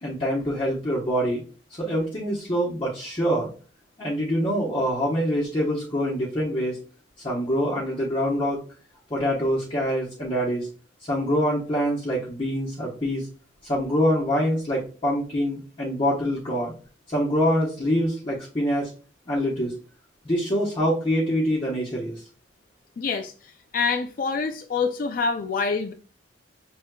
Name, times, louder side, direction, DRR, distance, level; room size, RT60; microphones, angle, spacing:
voice 1, 0.0-1.4 1.8-3.5 4.0-6.8 7.2-8.6 9.1-10.7 11.1-13.3 13.6-16.7 17.1-18.9 19.3-19.7 20.2-22.2, equal, 25° left, -7 dB, 1.0 m, -25 dB
voice 2, 23.0-23.3 23.7-25.9, left 4 dB, 45° left, 6 dB, 0.4 m, -26 dB
6.2 x 3.4 x 2.2 m, 0.38 s
head